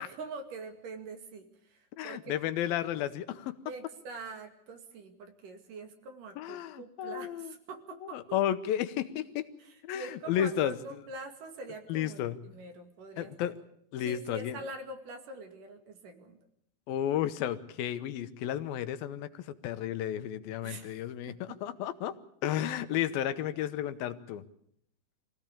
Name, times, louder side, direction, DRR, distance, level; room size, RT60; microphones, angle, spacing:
voice 1, 0.0-2.4 3.7-8.4 9.6-13.5 14.0-16.4 20.6-21.0 21.3-21.6, right 3 dB, 65° right, 5 dB, 3.8 m, -45 dB
voice 2, 2.0-3.5 6.4-7.5 8.1-9.5 9.8-10.8 11.9-12.4 13.2-13.5 13.9-14.6 16.9-22.1 22.4-24.4, left 11 dB, 90° left, 12 dB, 2.9 m, -32 dB
24.5 x 16.5 x 8.5 m, 0.70 s
omnidirectional pair, 4.1 m